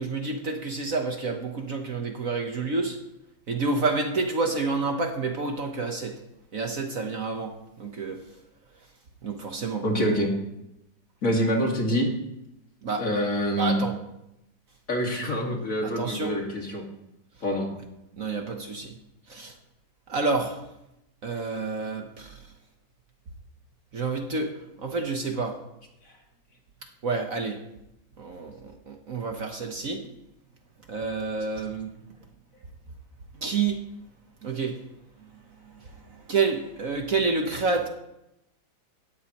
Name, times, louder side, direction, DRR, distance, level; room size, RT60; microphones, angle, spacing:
voice 1, 0.0-3.0 3.5-6.2 6.5-8.2 9.2-9.8 12.8-13.1 13.6-14.0 15.8-16.3 18.2-18.9 19.3-19.6 20.1-20.6 21.2-22.4 23.9-25.6 27.0-27.6 28.2-30.1 30.9-31.9 33.3-33.8 34.4-34.8 35.2-37.9, right 4 dB, 50° right, 3 dB, 1.4 m, -29 dB
voice 2, 9.8-10.3 11.2-12.1 13.0-13.8 14.9-16.8 17.4-17.7, equal, 45° left, 0 dB, 2.5 m, -25 dB
18.0 x 13.0 x 3.1 m, 0.86 s
omnidirectional pair, 2.0 m